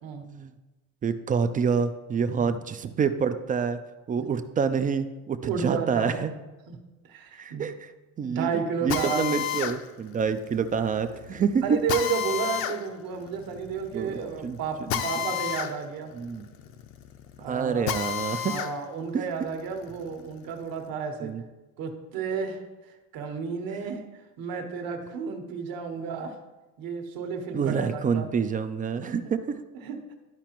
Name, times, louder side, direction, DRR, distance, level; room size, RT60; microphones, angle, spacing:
voice 1, 1.0-3.8 4.1-6.3 7.4-7.9 8.2-8.5 8.8-11.6 13.9-14.6 16.1-16.5 17.5-18.6 19.1-19.2 21.2-21.4 27.5-29.6, right 6 dB, 25° right, 10 dB, 0.3 m, -27 dB
voice 2, 5.4-6.3 6.7-6.8 7.0-7.7 8.2-9.4 11.6-16.1 17.4-17.9 18.4-21.3 21.8-22.6 23.1-24.0 24.4-26.4 26.8-28.3 28.9-29.3 29.8-30.2, right 6 dB, 60° right, 4 dB, 1.4 m, -32 dB
Drill, 8.9-18.7 19.2-20.8, left 10 dB, 65° left, 0.8 m, -33 dB
12.0 x 4.9 x 3.0 m, 1.1 s
cardioid pair, 120°, 39 cm